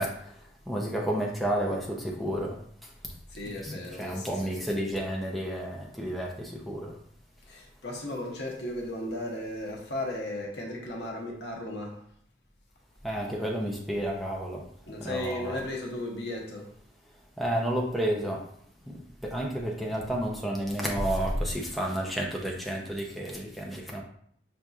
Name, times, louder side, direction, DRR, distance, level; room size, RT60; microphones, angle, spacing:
voice 1, 0.0-2.9 3.6-7.0 13.0-14.6 15.0-15.6 17.4-18.5 18.9-24.0, right 1 dB, ahead, 0.5 m, -31 dB
voice 2, 3.3-4.7 7.5-12.0 14.8-16.7 19.9-20.1 20.9-21.1, left 1 dB, 75° left, 0.9 m, -35 dB
6.0 x 2.6 x 2.3 m
head